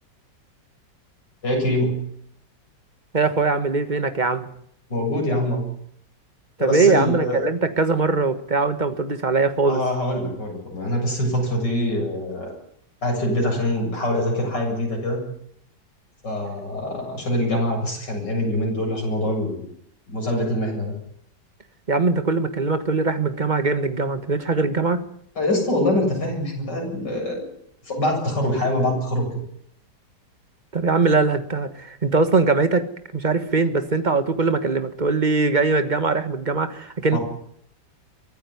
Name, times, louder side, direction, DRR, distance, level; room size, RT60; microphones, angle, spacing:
voice 1, 1.4-2.0 4.9-5.7 6.6-7.5 9.6-12.5 13.0-15.2 16.2-19.7 20.1-20.9 25.4-27.5 27.8-29.3 37.1-37.2, left 1 dB, 75° left, 1 dB, 8.3 m, -24 dB
voice 2, 3.1-4.5 6.6-9.8 21.9-25.0 30.7-32.8 33.1-37.2, right 3 dB, 25° right, 10 dB, 1.5 m, -21 dB
24.0 x 15.5 x 9.8 m, 0.70 s
omnidirectional pair, 1.9 m